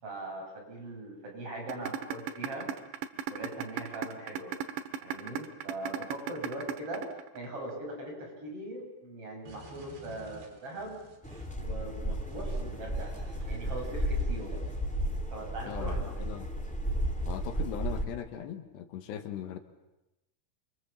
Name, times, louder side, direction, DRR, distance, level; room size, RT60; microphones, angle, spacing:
voice 1, 0.0-2.7 3.3-4.6 5.0-7.1 7.3-11.0 11.6-13.1 13.5-14.6 15.3-16.2, right 1 dB, 35° right, 0 dB, 7.5 m, -40 dB
sound 1, 1.7-7.7, right 8 dB, 90° right, 3.5 m, -36 dB
sound 2, 9.5-11.6 12.3-12.6 13.0-14.8, right 3 dB, 75° right, 6.1 m, -53 dB
sound 3, 11.2-18.0, right 1 dB, 5° left, 0.8 m, -33 dB
voice 2, 15.7-16.5 17.3-19.6, left 9 dB, 80° left, 7 dB, 3.5 m, -39 dB
27.5 x 25.5 x 7.3 m, 0.97 s
omnidirectional pair, 5.0 m